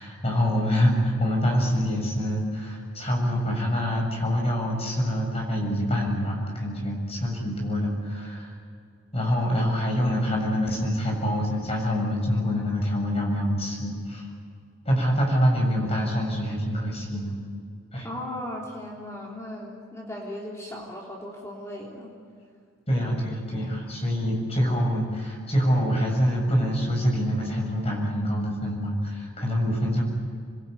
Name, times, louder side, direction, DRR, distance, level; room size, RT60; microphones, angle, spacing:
voice 1, 0.0-8.6 9.1-14.3 14.8-17.4 17.9-18.1 22.9-30.0, equal, 30° left, 0 dB, 7.4 m, -25 dB
voice 2, 18.0-22.1, left 1 dB, 15° left, -3 dB, 3.4 m, -37 dB
28.0 x 22.0 x 9.6 m, 2.2 s
head